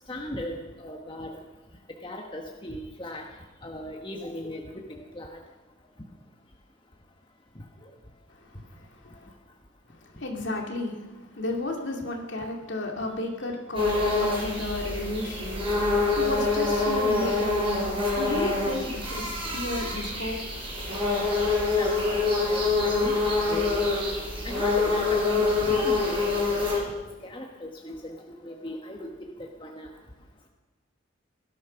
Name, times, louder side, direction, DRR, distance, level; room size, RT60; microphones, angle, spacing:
voice 1, 0.1-1.3 2.0-3.2 3.6-5.4 21.8-23.1 23.5-23.9 24.4-26.9 27.2-28.1 28.4-29.1 29.6-29.9, left 1 dB, 25° left, 1 dB, 1.3 m, -37 dB
voice 2, 10.2-11.0 11.3-15.5 16.2-20.4, left 2 dB, 60° left, 1 dB, 2.5 m, -33 dB
sound 1, 13.7-26.8, left 3 dB, 25° right, 5.6 m, -26 dB
18.0 x 12.5 x 5.9 m, 1.2 s
head